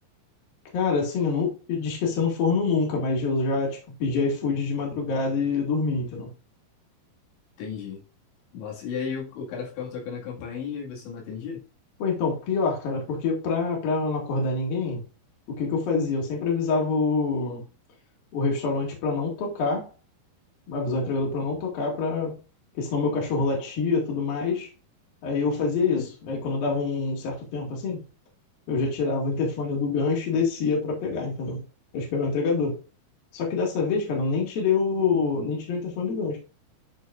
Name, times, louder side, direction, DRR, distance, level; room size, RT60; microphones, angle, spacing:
voice 1, 0.7-6.3 12.0-15.0 15.5-17.6 18.3-19.9 20.7-22.4 22.8-24.7 25.2-28.0 28.7-31.6 31.9-32.8 33.3-36.4, left 4 dB, 60° left, 3.9 m, -26 dB
voice 2, 7.6-8.0 8.5-11.6 26.0-26.1, left 6 dB, 85° left, 4.4 m, -34 dB
12.5 x 4.6 x 2.5 m
omnidirectional pair, 5.1 m